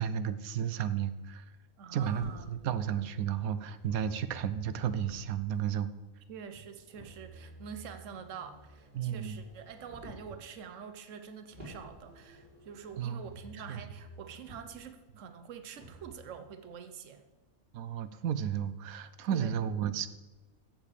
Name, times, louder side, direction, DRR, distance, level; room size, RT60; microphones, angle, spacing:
voice 1, 0.0-1.4 1.9-5.9 8.9-9.4 13.0-13.2 13.7-13.8 17.7-20.1, right 9 dB, 85° right, 14 dB, 1.1 m, -33 dB
voice 2, 1.8-2.6 6.3-17.2 19.3-19.6, right 7 dB, 65° right, 9 dB, 1.2 m, -46 dB
Motor vehicle (road), 2.1-5.6 6.9-10.4 11.5-14.8 15.7-16.1, right 1 dB, 35° right, 4.4 m, -51 dB
14.0 x 7.5 x 4.9 m, 1.2 s
omnidirectional pair, 1.5 m